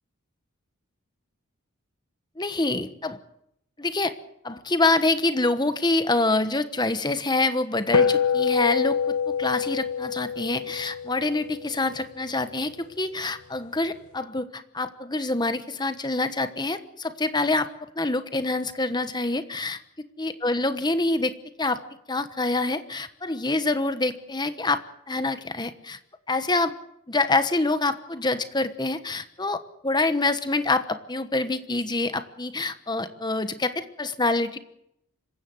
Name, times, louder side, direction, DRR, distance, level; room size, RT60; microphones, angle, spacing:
voice 1, 2.4-3.2 3.8-4.1 4.4-12.7 13.0-17.7 17.9-19.8 20.2-21.8 22.1-24.8 25.1-26.0 26.3-26.7 27.1-34.6, left 2 dB, 20° left, 10 dB, 1.2 m, -26 dB
sound 1, 7.9-12.6, left 6 dB, 90° left, 1.2 m, -26 dB
26.0 x 15.0 x 7.8 m, 0.78 s
head